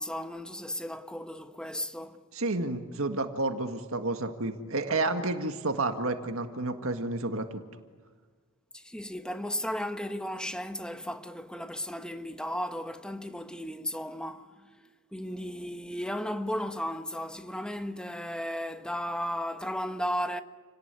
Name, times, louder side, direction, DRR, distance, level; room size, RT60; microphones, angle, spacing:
voice 1, 0.0-2.2 8.7-14.7 15.1-20.4, equal, 5° left, 1.3 m, -35 dB
voice 2, 2.3-7.6, right 2 dB, 70° right, 1.9 m, -30 dB
29.5 x 18.5 x 9.8 m
head